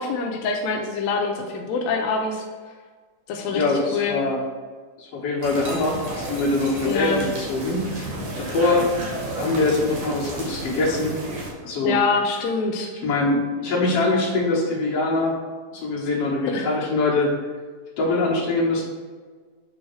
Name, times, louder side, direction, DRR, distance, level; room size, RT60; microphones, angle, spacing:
voice 1, 0.0-2.4 3.3-3.6 3.9-4.2 6.8-7.2 11.8-12.9 16.5-16.7, left 4 dB, 85° left, 1 dB, 1.6 m, -24 dB
voice 2, 3.5-4.4 5.0-8.9 9.4-11.2 11.6-11.9 13.0-15.3 15.7-17.3 18.0-18.8, left 2 dB, 55° left, -4 dB, 2.2 m, -23 dB
sound 1, 5.4-11.5, right 1 dB, 55° right, 2.7 m, -32 dB
7.7 x 3.9 x 4.6 m, 1.5 s
omnidirectional pair, 3.8 m